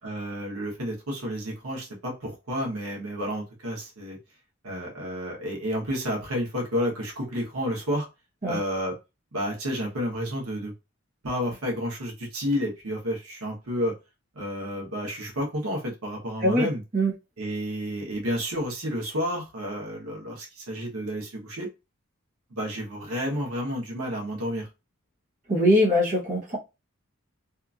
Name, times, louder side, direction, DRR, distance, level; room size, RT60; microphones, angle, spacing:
voice 1, 0.0-4.2 4.6-8.1 8.4-8.9 9.3-10.7 11.2-13.9 14.3-16.8 17.4-21.7 22.5-24.7, equal, 85° right, -2 dB, 1.0 m, -30 dB
voice 2, 25.5-26.6, equal, 35° right, -5 dB, 0.9 m, -21 dB
2.8 x 2.5 x 2.4 m, 0.27 s
head